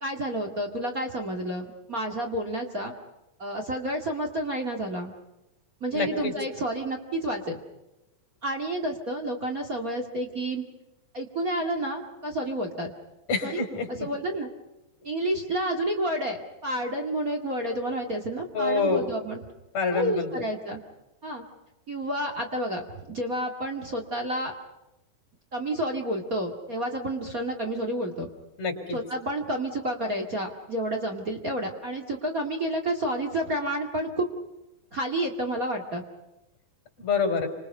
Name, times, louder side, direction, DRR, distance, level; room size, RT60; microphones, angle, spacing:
voice 1, 0.0-2.9 3.4-5.1 5.8-7.6 8.4-10.6 11.1-12.9 13.4-13.6 14.0-14.5 15.0-19.4 19.9-20.8 21.2-21.4 21.9-24.5 25.5-28.3 28.9-34.3 34.9-36.0, right 1 dB, 30° right, 2 dB, 1.9 m, -30 dB
voice 2, 5.9-6.3 13.3-14.1 18.5-19.1 19.7-20.3 28.6-29.0 37.0-37.5, left 4 dB, 50° left, 5 dB, 5.2 m, -26 dB
30.0 x 26.5 x 5.5 m, 0.96 s
omnidirectional pair, 4.1 m